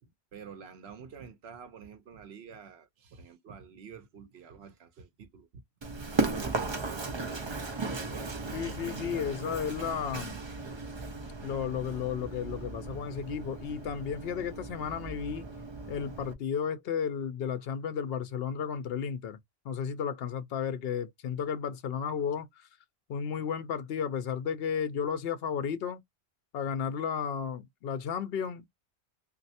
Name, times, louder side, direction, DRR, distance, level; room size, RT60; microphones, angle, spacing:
voice 1, 0.0-5.6 6.0-7.5, right 6 dB, 80° right, 1.0 m, -49 dB
Run, 5.8-16.3, right 3 dB, 35° right, 0.5 m, -36 dB
voice 2, 8.5-10.4 11.4-15.5 15.9-19.4 19.6-22.7 23.1-26.0 26.5-28.6, left 7 dB, 70° left, 0.8 m, -33 dB
3.1 x 2.5 x 2.7 m
omnidirectional pair, 1.1 m